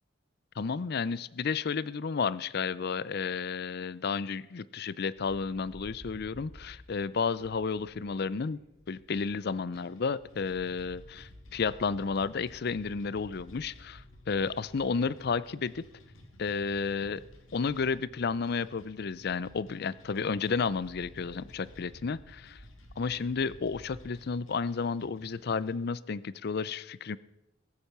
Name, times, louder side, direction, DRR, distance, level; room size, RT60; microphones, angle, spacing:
voice 1, 0.6-8.6 8.9-15.8 16.4-17.2 17.5-22.6 23.0-27.2, left 5 dB, 55° left, 19 dB, 0.5 m, -32 dB
Bird, 5.2-9.6 10.0-24.2, equal, 40° right, 3.9 m, -54 dB
sound 1, 9.7-25.7, equal, 85° left, 2.2 m, -57 dB
20.0 x 8.5 x 5.9 m, 0.88 s
head